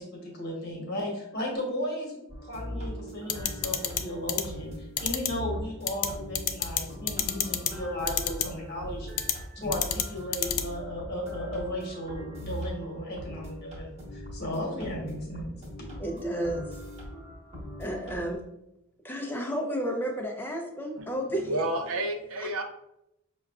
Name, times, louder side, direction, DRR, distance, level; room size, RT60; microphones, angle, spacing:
voice 1, 0.0-15.5, left 1 dB, 45° left, -2 dB, 1.1 m, -35 dB
sound 1, 2.3-18.3, equal, 30° right, 1.1 m, -41 dB
sound 2, 3.3-4.0 4.3-4.4 5.0-5.3 5.9-6.1 6.4-6.8 7.1-7.7 8.1-8.4 9.2-9.3 9.7-10.0 10.3-10.6, left 11 dB, 85° left, 0.4 m, -26 dB
voice 2, 16.0-16.7 17.8-18.4 19.0-21.5 22.4-22.5, equal, 10° left, 2 dB, 0.4 m, -32 dB
voice 3, 21.0-22.6, right 1 dB, 65° right, 5 dB, 0.5 m, -31 dB
5.8 x 2.3 x 2.3 m, 0.86 s
head